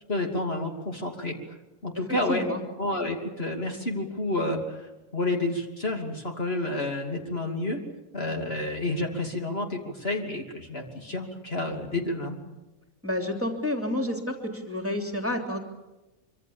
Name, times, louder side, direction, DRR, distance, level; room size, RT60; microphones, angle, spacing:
voice 1, 0.1-1.3 1.8-2.4 2.8-7.8 8.1-12.4, left 2 dB, 45° left, 2 dB, 3.1 m, -30 dB
voice 2, 2.3-2.6 13.0-15.6, left 1 dB, 10° right, 3 dB, 3.0 m, -29 dB
25.0 x 25.0 x 7.2 m, 1.0 s
omnidirectional pair, 1.4 m